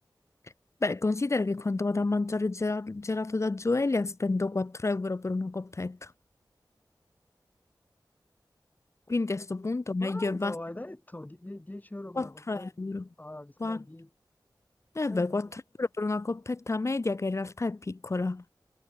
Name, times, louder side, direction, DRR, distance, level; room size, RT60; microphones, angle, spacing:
voice 1, 0.8-6.1 9.1-10.5 12.2-13.0 13.6-13.8 14.9-18.4, left 3 dB, 40° left, 0.7 m, -30 dB
voice 2, 10.0-12.7 13.2-14.1 15.1-15.5, left 1 dB, 20° left, 1.9 m, -42 dB
wide cardioid pair, 70°, 8 cm